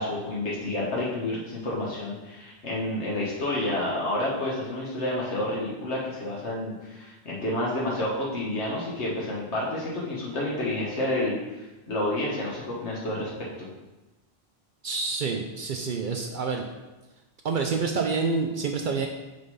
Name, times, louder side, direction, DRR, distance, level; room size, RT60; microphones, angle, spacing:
voice 1, 0.0-11.4 11.9-13.3 13.6-13.7, left 1 dB, 70° left, -5 dB, 1.5 m, -29 dB
voice 2, 14.8-16.6 17.4-19.1, right 4 dB, 60° right, 3 dB, 0.5 m, -27 dB
5.5 x 3.7 x 5.4 m, 1.1 s
omnidirectional pair, 1.2 m